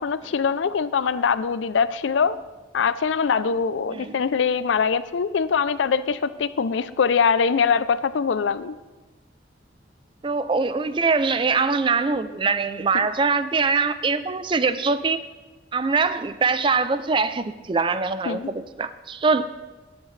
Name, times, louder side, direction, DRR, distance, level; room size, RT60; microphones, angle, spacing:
voice 1, 0.0-2.4 2.7-8.8 18.3-18.5, left 6 dB, 80° left, 15 dB, 0.4 m, -23 dB
voice 2, 10.2-15.2 15.7-19.4, right 4 dB, 25° right, 13 dB, 0.4 m, -23 dB
17.5 x 7.3 x 3.2 m, 1.2 s
head